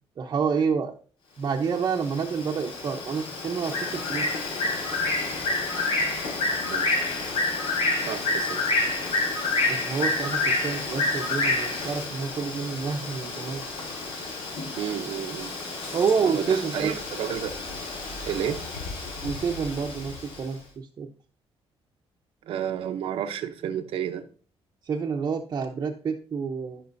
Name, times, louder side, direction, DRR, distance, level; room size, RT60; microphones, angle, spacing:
voice 1, 0.2-0.9 1.4-4.4 9.7-13.6 15.9-17.0 19.2-21.1 24.8-26.8, right 6 dB, 40° right, 0.9 m, -28 dB
Bird, 1.7-20.4, left 2 dB, 65° left, 4.1 m, -29 dB
voice 2, 8.1-8.6 14.8-15.5 16.2-17.6 18.3-18.6 22.5-24.2, right 9 dB, 75° right, 0.8 m, -31 dB
15.5 x 6.1 x 2.7 m
cardioid pair, 150°, 10 cm